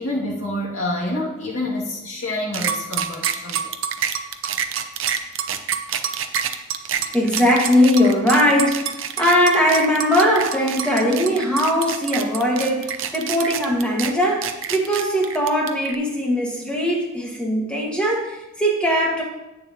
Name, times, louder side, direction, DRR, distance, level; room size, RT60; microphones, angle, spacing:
voice 1, 0.0-3.7, left 1 dB, 75° left, -7 dB, 2.4 m, -27 dB
sound 1, 2.5-15.9, right 8 dB, 65° right, 0.7 m, -27 dB
voice 2, 7.1-19.2, equal, 5° left, -3 dB, 1.9 m, -20 dB
10.5 x 8.7 x 3.0 m, 0.98 s
head